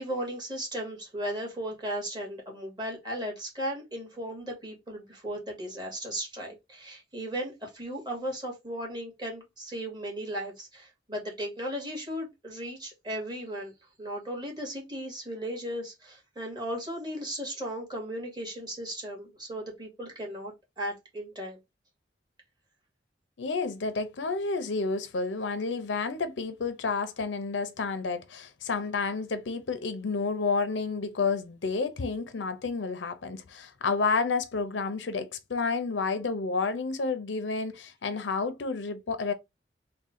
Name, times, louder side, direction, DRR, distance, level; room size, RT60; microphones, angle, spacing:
voice 1, 0.0-13.7 14.0-21.6, equal, 25° right, 1.8 m, -36 dB
voice 2, 23.4-39.3, left 4 dB, 80° left, 0.6 m, -30 dB
3.6 x 2.2 x 4.2 m
head